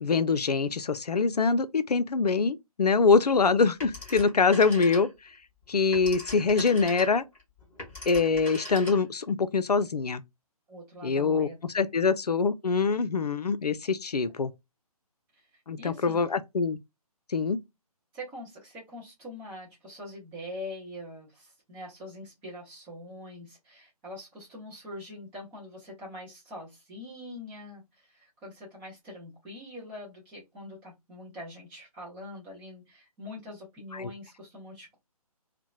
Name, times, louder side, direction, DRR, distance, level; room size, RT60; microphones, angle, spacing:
voice 1, 0.0-5.1 5.7-7.2 8.1-10.2 11.0-11.5 11.7-14.5 15.7-16.8 17.3-17.6 34.0-34.1, left 4 dB, 80° left, 0.4 m, -24 dB
Telephone, 3.8-5.4 5.7-9.3, left 1 dB, 10° left, 0.9 m, -41 dB
voice 2, 10.7-12.0 15.4-16.2 18.1-35.0, left 1 dB, 5° right, 0.4 m, -44 dB
2.7 x 2.1 x 2.2 m
figure-of-eight pair, 140°, 20 cm